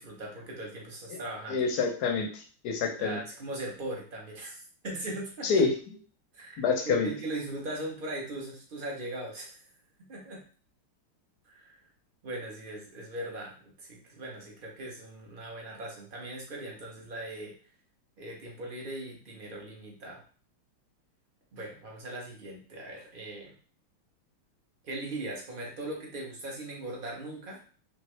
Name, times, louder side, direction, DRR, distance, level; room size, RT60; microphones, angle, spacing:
voice 1, 0.0-1.6 3.0-5.5 6.3-9.6 10.1-10.4 11.5-11.7 12.2-17.5 18.2-20.2 21.5-23.5 24.8-27.6, right 1 dB, 35° right, -2 dB, 0.8 m, -39 dB
voice 2, 1.5-3.2 5.4-5.7 6.6-7.1, left 5 dB, 65° left, 3 dB, 1.1 m, -27 dB
3.6 x 3.4 x 3.2 m, 0.40 s
omnidirectional pair, 2.4 m